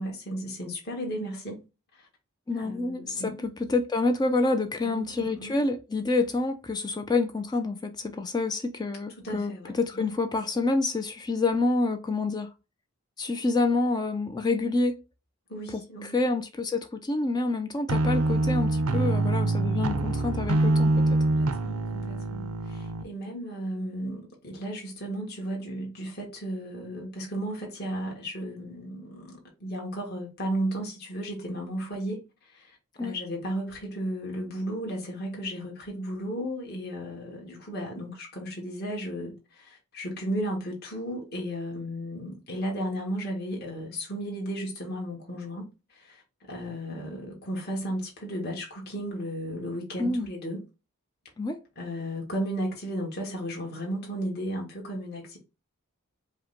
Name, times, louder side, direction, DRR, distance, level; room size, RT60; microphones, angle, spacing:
voice 1, 0.0-1.6 2.5-3.4 4.8-5.6 9.2-10.1 15.5-16.2 21.2-32.2 32.5-46.2 46.5-50.6 51.8-55.4, equal, 45° left, 1.5 m, -34 dB
voice 2, 2.5-12.5 13.2-15.0 15.7-21.2 33.0-33.1 50.0-50.3 51.4-51.6, left 3 dB, 20° left, 0.3 m, -28 dB
sound 1, 17.9-23.0, right 2 dB, 80° right, 0.6 m, -25 dB
5.1 x 2.1 x 3.8 m
head